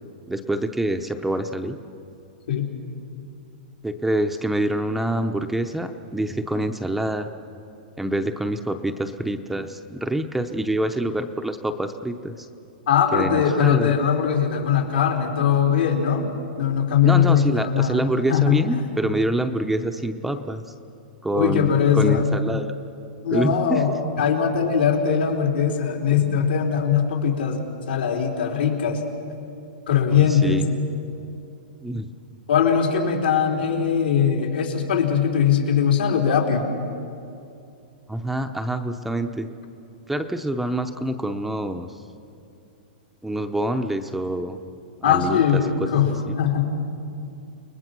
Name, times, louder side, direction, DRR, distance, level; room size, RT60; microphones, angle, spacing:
voice 1, 0.3-1.8 3.8-7.3 8.0-12.5 13.1-13.9 17.0-20.6 21.2-22.7 23.3-23.8 30.1-30.7 31.8-32.1 38.1-39.5 40.1-42.0 43.2-44.6 45.0-45.6 45.9-46.3, right 1 dB, 5° right, 6 dB, 0.7 m, -26 dB
voice 2, 12.9-16.3 16.6-18.0 18.3-18.6 21.3-22.2 23.2-29.0 29.9-30.6 32.5-36.6 45.0-46.6, left 7 dB, 85° left, 0 dB, 4.2 m, -20 dB
29.5 x 20.0 x 6.1 m, 2.6 s
hypercardioid pair, 160°, 5 cm